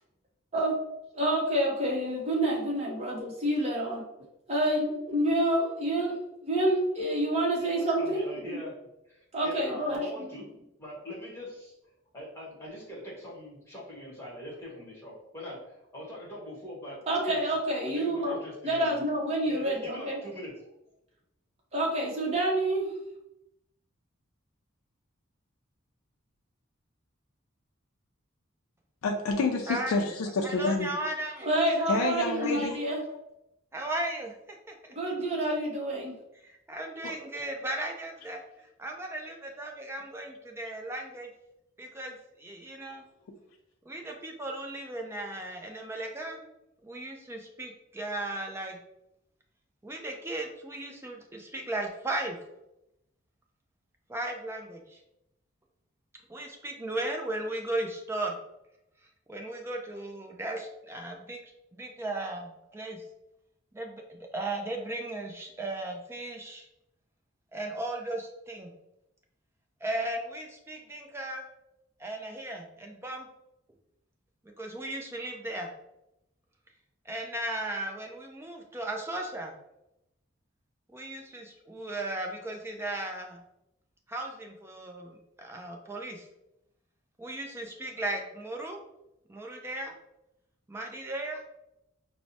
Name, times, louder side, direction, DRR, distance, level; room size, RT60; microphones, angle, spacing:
voice 1, 1.1-4.0 4.5-8.6 9.3-10.3 17.1-18.4 18.6-20.2 21.7-22.9 31.4-33.0 34.9-36.1, right 1 dB, 30° right, -3 dB, 0.8 m, -28 dB
voice 2, 7.6-8.7 9.1-10.5 10.8-11.7 12.1-17.4 17.8-19.0 19.5-20.7, left 1 dB, 10° left, -5 dB, 1.1 m, -42 dB
voice 3, 29.0-30.9 31.9-32.8 37.0-37.1, left 3 dB, 80° left, 3 dB, 0.4 m, -28 dB
voice 4, 29.7-30.1 30.4-31.5 31.9-32.6 33.7-34.9 36.4-38.4 38.8-41.3 41.8-43.0 43.9-46.5 46.8-48.8 49.8-52.4 54.1-55.0 56.3-58.4 59.0-61.4 61.7-63.0 63.7-66.7 67.5-68.7 69.8-71.4 72.0-73.3 74.4-75.7 77.0-79.5 80.9-83.4 84.1-86.3 87.2-88.8 89.3-89.9 90.7-91.4, right 1 dB, 10° right, 1 dB, 0.4 m, -36 dB
4.5 x 2.0 x 2.7 m, 0.86 s
head